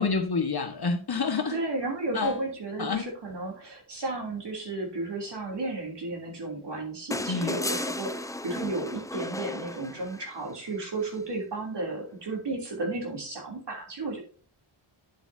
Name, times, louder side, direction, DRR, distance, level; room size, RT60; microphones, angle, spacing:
voice 1, 0.0-1.6 2.1-2.4 2.8-3.1 7.3-7.6, left 4 dB, 50° left, 4 dB, 1.5 m, -28 dB
voice 2, 1.5-14.2, right 2 dB, 55° right, 0 dB, 3.2 m, -33 dB
sound 1, 7.1-10.4 12.0-12.1, left 2 dB, 10° left, 0.3 m, -34 dB
9.3 x 8.0 x 2.8 m, 0.42 s
wide cardioid pair, 150°, 50 cm